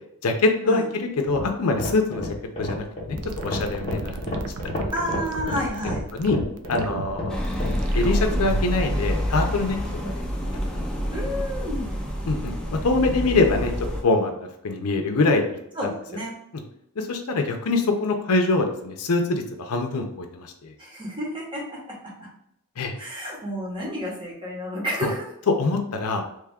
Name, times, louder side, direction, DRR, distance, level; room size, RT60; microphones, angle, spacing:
voice 1, 0.2-4.2 4.6-4.9 6.1-6.4 6.7-7.4 7.9-9.8 10.0-10.1 10.7-10.8 12.3-13.7 14.0-15.4 17.0-20.7 22.8-22.9 25.0-25.1 25.5-26.2, left 3 dB, 75° left, 4 dB, 0.5 m, -24 dB
sound 1, 1.2-7.8, left 1 dB, 25° left, 1.0 m, -31 dB
sound 2, 3.2-8.8, right 4 dB, 75° right, 0.4 m, -36 dB
voice 2, 4.9-6.0 11.1-11.9 15.8-16.3 20.8-22.0 23.0-25.2, equal, 20° right, -3 dB, 0.9 m, -30 dB
sound 3, 7.3-14.0, equal, 5° left, 0.4 m, -27 dB
3.1 x 2.3 x 3.5 m, 0.77 s
head